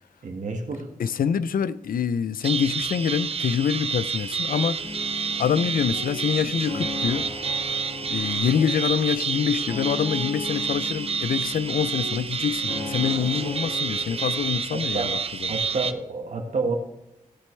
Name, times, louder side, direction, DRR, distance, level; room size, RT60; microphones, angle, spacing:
voice 1, 0.2-0.9 14.7-15.2 15.5-16.7, right 3 dB, 60° right, 1.5 m, -29 dB
voice 2, 1.0-4.8 5.4-7.3 8.1-15.6, left 7 dB, 85° left, 0.4 m, -25 dB
sound 1, 2.4-15.9, right 6 dB, 45° right, 0.5 m, -29 dB
sound 2, 4.4-14.8, right 1 dB, 25° right, 2.8 m, -53 dB
sound 3, 4.8-14.4, left 2 dB, 60° left, 1.5 m, -37 dB
15.5 x 7.6 x 3.2 m
wide cardioid pair, 175°, 14 cm